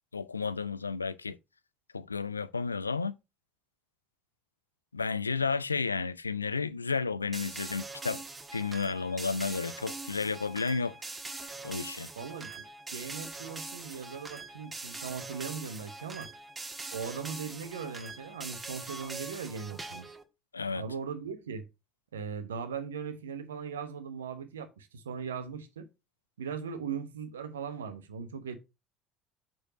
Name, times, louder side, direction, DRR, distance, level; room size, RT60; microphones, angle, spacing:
voice 1, 0.1-1.4 1.9-3.2 4.9-8.2 8.5-10.9 11.6-12.1 20.5-20.8, left 4 dB, 85° left, 0.3 m, -32 dB
sound 1, 7.3-20.2, right 3 dB, 20° right, 1.6 m, -43 dB
voice 2, 12.1-16.3 16.9-20.1 20.7-21.7 22.1-25.9 26.4-28.6, right 6 dB, 75° right, 1.0 m, -39 dB
6.7 x 4.5 x 4.9 m
figure-of-eight pair, 60°, 0 cm